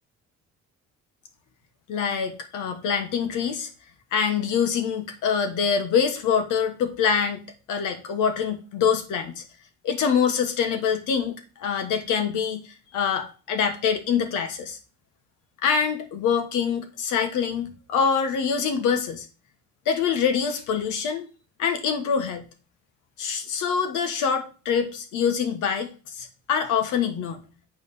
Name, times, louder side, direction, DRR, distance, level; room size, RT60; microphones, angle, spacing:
voice 1, 1.9-3.7 4.1-7.4 7.7-9.4 9.8-12.6 12.9-14.8 15.6-19.3 19.8-21.3 21.6-22.4 23.2-27.5, left 7 dB, 90° left, 7 dB, 1.4 m, -25 dB
8.9 x 3.5 x 5.5 m, 0.35 s
cardioid pair, 90°, 30 cm